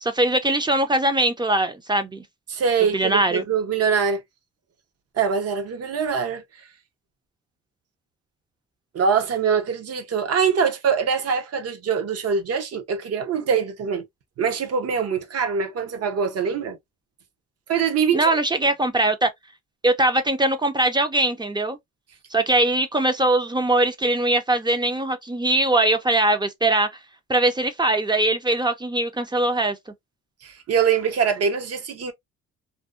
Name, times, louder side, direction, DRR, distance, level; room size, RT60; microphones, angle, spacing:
voice 1, 0.0-2.2 2.9-3.4 18.1-19.3 19.8-21.8 22.3-26.9 27.3-29.8, right 2 dB, 15° right, 0.5 m, -21 dB
voice 2, 2.5-4.2 5.2-6.4 8.9-14.1 14.4-16.8 17.7-18.3 30.4-32.1, right 6 dB, 55° right, 0.8 m, -23 dB
2.6 x 2.1 x 2.4 m
cardioid pair, 90°, 30 cm